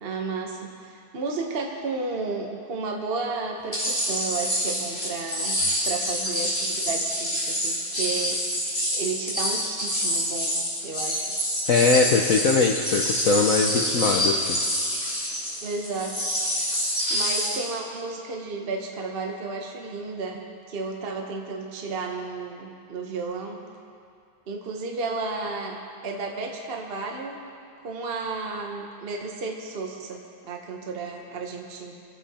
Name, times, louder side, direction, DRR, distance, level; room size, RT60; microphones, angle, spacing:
voice 1, 0.0-8.4 8.9-11.3 15.6-16.2 17.1-23.6 24.5-27.4 27.8-31.9, right 3 dB, 40° right, 1 dB, 0.8 m, -33 dB
sound 1, 3.7-17.7, equal, 15° left, 3.0 m, -27 dB
voice 2, 11.7-14.6, left 4 dB, 75° left, 1 dB, 0.7 m, -21 dB
23.5 x 8.4 x 4.3 m, 2.4 s
omnidirectional pair, 2.4 m